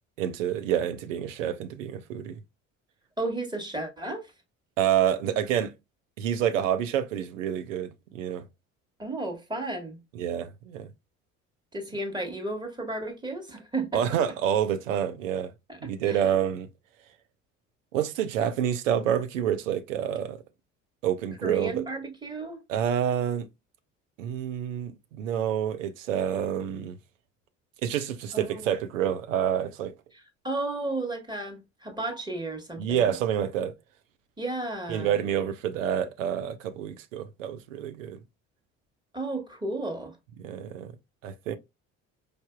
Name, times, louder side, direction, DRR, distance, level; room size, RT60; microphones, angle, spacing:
voice 1, 0.2-2.4 4.8-5.7 6.2-8.4 10.1-10.9 13.9-15.5 15.8-16.7 17.9-20.4 21.0-21.8 22.7-23.5 24.2-27.0 27.8-29.9 32.8-33.7 34.9-38.2 40.4-40.9 41.2-41.6, right 9 dB, 75° right, 0.7 m, -28 dB
voice 2, 3.2-4.3 9.0-10.0 11.7-14.0 15.7-16.2 21.4-22.6 28.3-28.7 30.4-33.1 34.4-35.2 39.1-40.1, right 2 dB, 10° right, 1.5 m, -33 dB
4.9 x 2.7 x 2.3 m
figure-of-eight pair, 55°, 39 cm